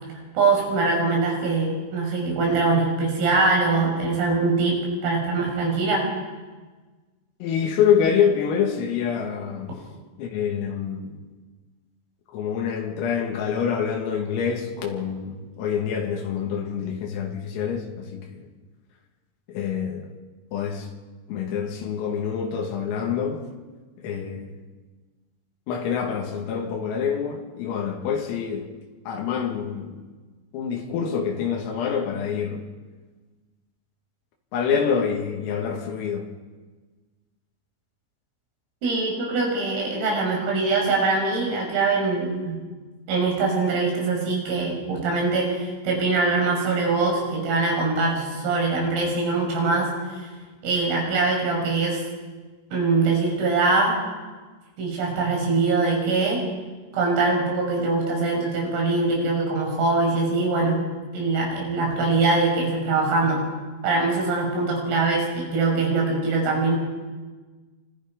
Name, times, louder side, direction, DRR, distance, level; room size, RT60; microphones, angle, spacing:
voice 1, 0.4-6.0 38.8-42.6 43.1-50.3 50.6-52.0 52.7-54.0 54.8-56.4 56.9-60.8 61.1-63.4 63.8-66.7, right 3 dB, 80° right, 8.6 m, -23 dB
voice 2, 7.4-9.8 10.2-11.2 12.3-18.5 19.5-20.1 20.5-20.9 21.3-23.5 24.0-24.6 25.7-28.7 29.1-30.0 30.5-32.6 34.5-36.3, left 7 dB, 85° left, 5.0 m, -26 dB
28.0 x 25.5 x 5.4 m
omnidirectional pair, 5.9 m